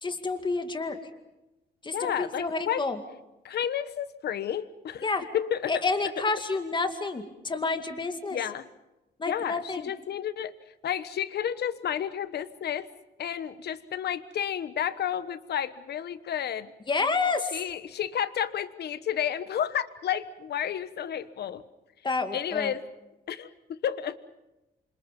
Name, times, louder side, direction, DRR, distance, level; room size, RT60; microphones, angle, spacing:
voice 1, 0.0-1.0 1.8-3.0 5.0-5.2 5.7-8.4 9.2-9.9 16.9-17.5 22.0-22.7, left 3 dB, 25° left, 7 dB, 2.3 m, -29 dB
voice 2, 1.9-2.9 3.4-5.8 6.2-6.3 8.3-8.7 9.3-10.5 10.8-12.9 13.2-16.7 17.5-21.6 22.3-22.8 23.3-24.2, left 9 dB, 65° left, 13 dB, 1.2 m, -31 dB
28.5 x 26.0 x 5.4 m, 0.99 s
cardioid pair, 125°, 18 cm